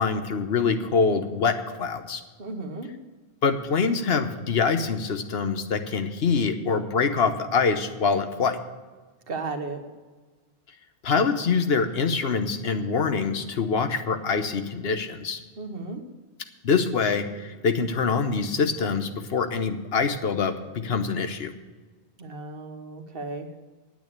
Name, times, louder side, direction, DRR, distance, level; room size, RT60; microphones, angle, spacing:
voice 1, 0.0-2.2 3.4-8.6 11.0-15.4 16.6-21.5, left 5 dB, 75° left, 8 dB, 1.1 m, -25 dB
voice 2, 2.4-2.9 9.3-9.8 15.6-16.0 22.2-23.5, right 3 dB, 65° right, 5 dB, 1.4 m, -34 dB
9.3 x 8.7 x 8.5 m, 1.3 s
omnidirectional pair, 1.1 m